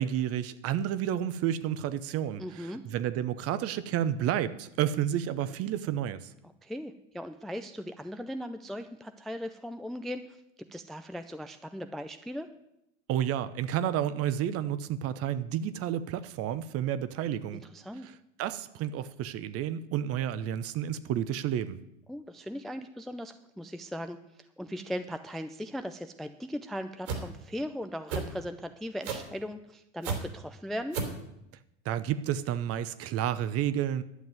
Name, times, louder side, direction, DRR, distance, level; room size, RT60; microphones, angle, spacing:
voice 1, 0.0-6.3 13.1-17.6 18.0-21.8 31.8-34.0, right 10 dB, 35° right, 0.9 m, -31 dB
voice 2, 2.4-2.8 6.6-10.4 10.7-12.5 17.7-18.1 22.1-24.2 24.6-31.0, equal, ahead, 0.4 m, -38 dB
sound 1, 27.1-27.2 28.1-28.3 29.0-29.3 30.0-30.2 30.9-31.2, right 6 dB, 70° right, 3.5 m, -31 dB
11.5 x 7.1 x 9.4 m
hypercardioid pair, 100°, 39 cm